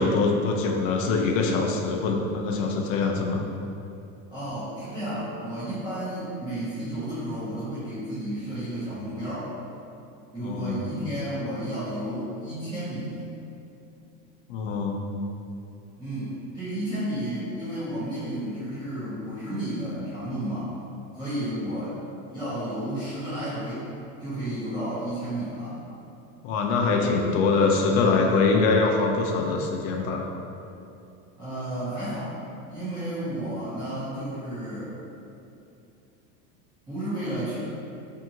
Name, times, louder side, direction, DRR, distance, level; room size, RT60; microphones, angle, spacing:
voice 1, 0.0-3.5 10.4-10.8 14.5-15.0 26.4-30.3, left 4 dB, 65° left, 2 dB, 0.5 m, -23 dB
voice 2, 4.3-9.5 10.3-13.3 16.0-20.7 21.1-22.0 22.3-23.9 24.2-25.8 31.4-32.3 32.7-35.0 36.9-37.6, right 1 dB, 10° right, -15 dB, 0.7 m, -32 dB
2.7 x 2.6 x 2.6 m, 2.6 s
supercardioid pair, 130°, 43 cm